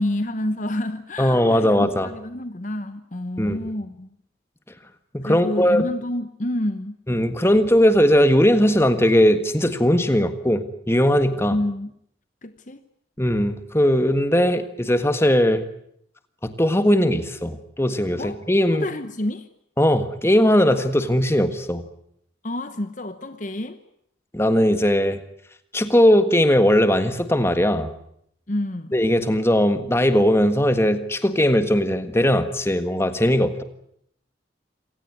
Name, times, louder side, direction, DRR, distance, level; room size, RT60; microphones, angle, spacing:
voice 1, 0.0-4.1 5.2-7.0 11.5-12.0 12.4-12.8 18.2-18.4 18.7-19.5 22.4-23.8 28.5-28.9, left 1 dB, 40° left, 1.0 m, -28 dB
voice 2, 1.2-2.1 3.4-3.6 5.1-5.9 7.1-11.6 13.2-15.6 16.4-18.9 19.8-21.8 24.3-25.2 25.7-27.9 28.9-33.6, equal, 15° left, 1.6 m, -19 dB
27.0 x 17.5 x 9.6 m
head